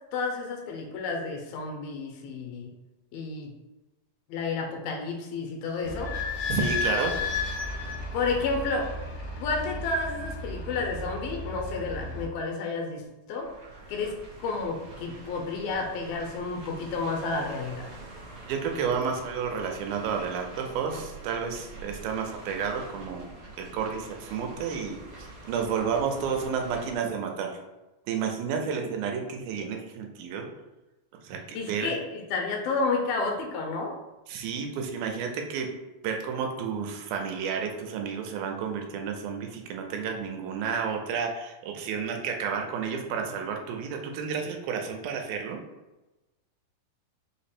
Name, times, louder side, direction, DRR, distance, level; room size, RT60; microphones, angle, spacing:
voice 1, 0.1-2.7 3.1-3.5 4.3-6.1 8.1-8.9 9.4-13.5 13.9-17.9 31.5-33.9, left 3 dB, 80° left, 1 dB, 2.5 m, -31 dB
Idling / Squeak, 5.8-12.2, left 3 dB, 65° left, 1.3 m, -33 dB
voice 2, 6.5-7.1 18.4-23.3 23.6-27.6 28.1-30.5 31.2-31.9 34.3-35.7 36.0-45.6, right 6 dB, 80° right, 3 dB, 2.4 m, -31 dB
sound 1, 13.4-26.9, right 2 dB, 65° right, 1.2 m, -45 dB
5.7 x 2.0 x 4.2 m, 1.1 s
omnidirectional pair, 4.2 m